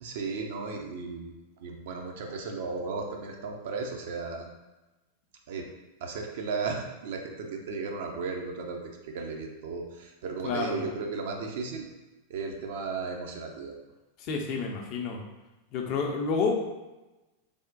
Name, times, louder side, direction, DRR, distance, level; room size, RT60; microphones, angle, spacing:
voice 1, 0.0-1.3 1.6-4.5 5.5-5.7 6.0-11.9 12.3-13.8, right 4 dB, 55° right, 2 dB, 0.5 m, -35 dB
voice 2, 10.4-10.8 14.2-15.2 15.7-16.6, left 4 dB, 40° left, 1 dB, 0.6 m, -29 dB
3.4 x 2.2 x 3.8 m, 1.1 s
figure-of-eight pair, 90°, 0 cm